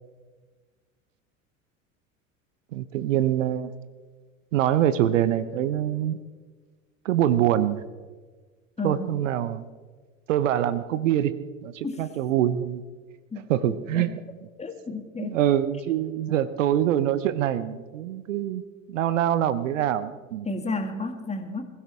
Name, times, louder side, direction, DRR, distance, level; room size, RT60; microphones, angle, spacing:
voice 1, 2.7-3.7 4.5-6.2 7.0-7.8 8.8-9.6 10.3-11.3 11.6-12.8 13.5-14.1 15.2-18.6 18.9-20.5, right 11 dB, 65° right, 15 dB, 0.9 m, -24 dB
voice 2, 8.8-9.1 11.8-12.0 13.3-14.0 14.6-15.4 20.4-21.7, left 2 dB, 15° left, 6 dB, 2.1 m, -32 dB
21.5 x 16.0 x 3.5 m, 1.4 s
figure-of-eight pair, 75°, 40 cm